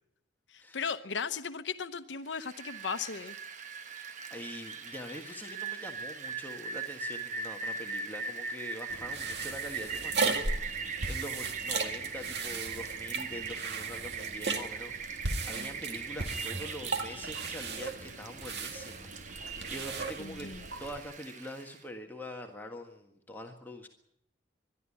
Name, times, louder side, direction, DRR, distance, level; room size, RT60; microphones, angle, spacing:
voice 1, 0.5-3.4 20.2-20.6, left 6 dB, 85° left, 10 dB, 0.9 m, -36 dB
Rain, 2.3-21.8, right 5 dB, 40° right, 1.3 m, -40 dB
voice 2, 3.8-20.5 20.8-23.9, left 1 dB, 10° left, 2 dB, 1.6 m, -44 dB
sound 1, 8.9-21.0, right 4 dB, 70° right, 2.0 m, -36 dB
22.0 x 12.5 x 9.9 m, 0.76 s
head